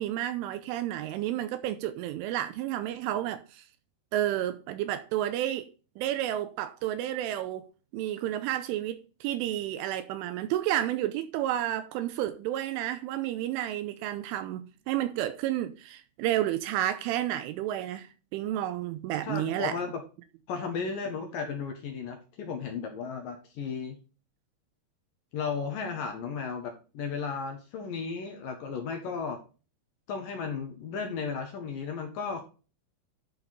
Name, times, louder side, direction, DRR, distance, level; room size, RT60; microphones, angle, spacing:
voice 1, 0.0-3.7 4.1-5.7 6.0-7.7 7.9-19.8, right 13 dB, 85° right, 3.2 m, -31 dB
voice 2, 19.3-20.0 20.5-24.0 25.3-29.4 30.1-32.4, left 5 dB, 60° left, 2.4 m, -34 dB
11.5 x 5.6 x 4.1 m
omnidirectional pair, 5.8 m